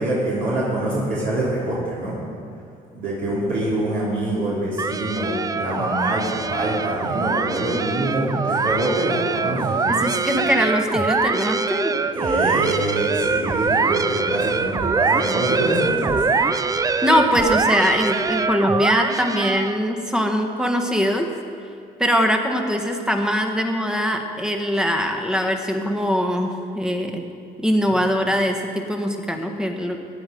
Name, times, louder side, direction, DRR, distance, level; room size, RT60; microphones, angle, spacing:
voice 1, 0.0-2.2 2.9-10.0 12.1-16.2, right 1 dB, 60° right, -8 dB, 3.4 m, -25 dB
sound 1, 4.8-19.9, right 4 dB, 20° right, 0.4 m, -23 dB
voice 2, 10.0-12.0 16.7-21.3 22.0-27.2 27.6-30.0, equal, 5° right, 4 dB, 1.4 m, -22 dB
17.0 x 9.5 x 5.2 m, 2.4 s
cardioid pair, 110°, 17 cm